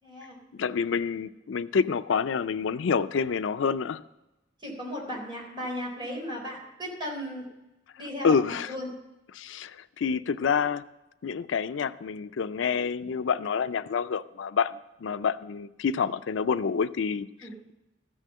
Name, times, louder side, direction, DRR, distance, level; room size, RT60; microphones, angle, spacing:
voice 1, 0.0-0.7 4.6-7.4 8.0-8.9 17.4-17.5, equal, 25° right, -2 dB, 3.9 m, -36 dB
voice 2, 0.5-4.0 8.2-8.7 9.3-10.8 11.2-17.7, left 6 dB, 85° left, 13 dB, 0.4 m, -28 dB
14.0 x 6.4 x 7.6 m, 0.97 s
head